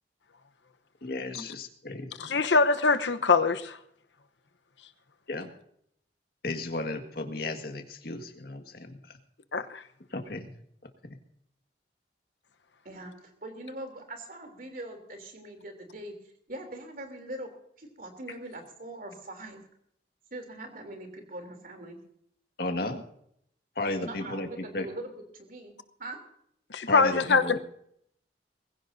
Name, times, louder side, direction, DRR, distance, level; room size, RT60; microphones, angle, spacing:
voice 1, 1.0-2.1 5.3-5.5 6.4-9.2 10.1-10.6 22.6-23.0 23.8-24.9 26.9-27.6, left 2 dB, 55° left, 6 dB, 1.8 m, -34 dB
voice 2, 2.2-3.8 9.5-9.8 26.7-27.6, left 4 dB, 90° left, 10 dB, 1.0 m, -23 dB
voice 3, 12.8-16.2 16.5-17.5 17.8-19.6 20.3-22.0 24.0-25.7 26.0-26.2, right 1 dB, 50° right, 5 dB, 3.2 m, -42 dB
21.5 x 16.0 x 2.7 m, 0.70 s
head